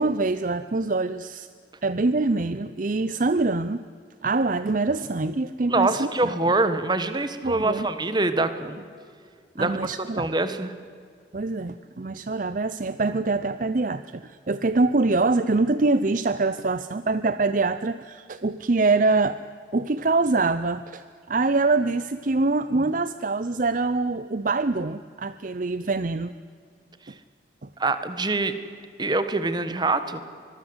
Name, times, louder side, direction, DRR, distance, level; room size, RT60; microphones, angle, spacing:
voice 1, 0.0-1.5 1.8-3.8 4.2-6.1 7.4-7.9 9.6-10.3 11.3-19.4 19.7-26.3 27.6-27.7, right 3 dB, 45° right, 13 dB, 0.6 m, -24 dB
voice 2, 5.7-8.8 9.5-10.7 27.8-28.6 29.0-30.2, right 2 dB, 25° right, 11 dB, 1.4 m, -25 dB
25.0 x 22.0 x 8.0 m, 2.2 s
head